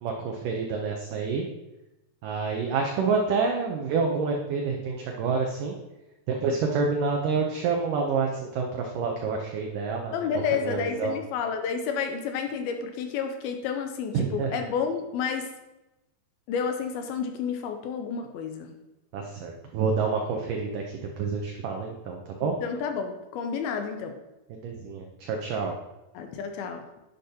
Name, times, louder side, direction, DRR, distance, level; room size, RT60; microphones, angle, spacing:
voice 1, 0.0-1.4 2.2-5.8 6.3-10.1 10.5-11.2 14.1-14.6 19.1-20.8 21.2-22.5 24.5-25.7, right 5 dB, 90° right, 1 dB, 1.8 m, -28 dB
voice 2, 10.1-15.5 16.5-18.7 22.4-24.2 26.1-26.9, left 6 dB, 80° left, 6 dB, 2.3 m, -30 dB
10.0 x 8.3 x 2.8 m, 0.97 s
omnidirectional pair, 4.9 m